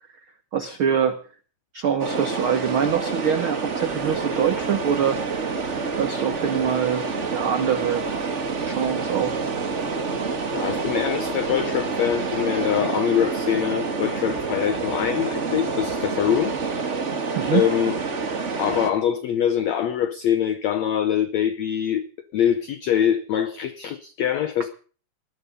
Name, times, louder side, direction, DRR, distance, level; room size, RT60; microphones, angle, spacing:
voice 1, 0.5-1.2 1.7-5.2 6.0-8.1 8.6-9.4 17.3-17.6, right 8 dB, 80° right, 1.1 m, -24 dB
sound 1, 2.0-18.9, right 4 dB, 65° right, 0.7 m, -28 dB
sound 2, 3.8-12.8, right 5 dB, 40° right, 1.7 m, -45 dB
voice 2, 10.5-16.5 17.5-18.0 18.6-22.0 22.3-24.7, left 9 dB, 85° left, 1.5 m, -23 dB
20.0 x 13.0 x 5.3 m
omnidirectional pair, 4.2 m